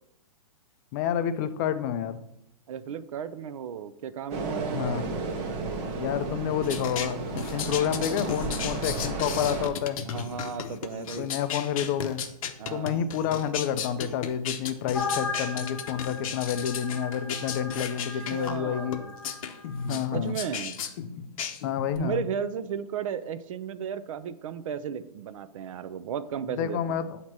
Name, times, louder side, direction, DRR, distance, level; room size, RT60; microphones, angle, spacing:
voice 1, 0.9-2.2 4.7-5.1 5.9-10.0 11.2-12.2 12.7-19.0 19.9-20.3 21.6-22.2 26.5-27.2, left 9 dB, 30° left, 10 dB, 0.4 m, -29 dB
voice 2, 2.7-5.0 10.1-11.3 12.6-13.0 17.8-17.9 18.1-19.1 19.8-20.8 22.0-27.1, right 8 dB, 55° right, 14 dB, 0.4 m, -35 dB
sound 1, 4.3-9.7, right 3 dB, 25° right, 0.7 m, -33 dB
sound 2, 6.6-22.0, left 7 dB, 55° left, 0.7 m, -35 dB
sound 3, 14.9-19.4, left 4 dB, 5° left, 1.0 m, -37 dB
7.2 x 2.9 x 4.6 m, 0.81 s
hypercardioid pair, 145°, 20 cm